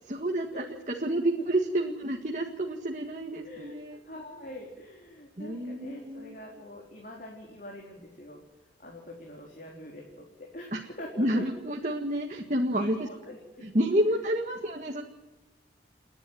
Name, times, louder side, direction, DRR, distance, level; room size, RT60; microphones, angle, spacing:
voice 1, 0.2-4.0 5.4-6.4 10.7-10.8 11.2-13.1 13.6-15.0, right 1 dB, 40° right, 1 dB, 1.7 m, -29 dB
voice 2, 3.4-8.4 8.8-11.5 12.3-12.5 12.7-13.7 14.1-14.2, left 1 dB, 45° left, -1 dB, 3.9 m, -44 dB
30.0 x 10.5 x 9.3 m, 1.1 s
head